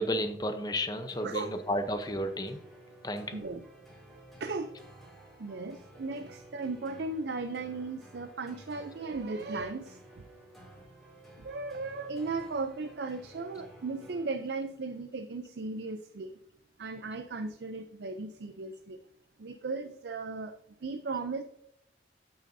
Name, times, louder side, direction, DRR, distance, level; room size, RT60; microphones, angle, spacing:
voice 1, 0.0-2.6 3.0-3.4, equal, 20° left, 8 dB, 0.7 m, -32 dB
sound 1, 0.9-14.6, right 1 dB, ahead, 2.2 m, -53 dB
voice 2, 3.3-3.6 4.4-4.7 5.4-10.0 11.4-16.3 16.8-19.0 19.4-21.4, right 3 dB, 70° right, 8 dB, 0.5 m, -36 dB
8.8 x 8.4 x 2.7 m, 0.76 s
head